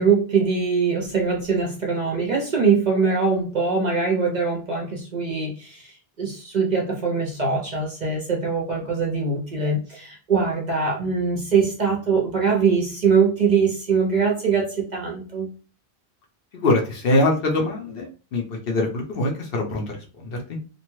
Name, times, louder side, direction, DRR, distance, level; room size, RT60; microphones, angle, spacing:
voice 1, 0.0-15.5, right 5 dB, 50° right, 0.6 m, -22 dB
voice 2, 16.5-20.6, left 2 dB, 60° left, 0.8 m, -23 dB
2.6 x 2.2 x 3.0 m
omnidirectional pair, 1.1 m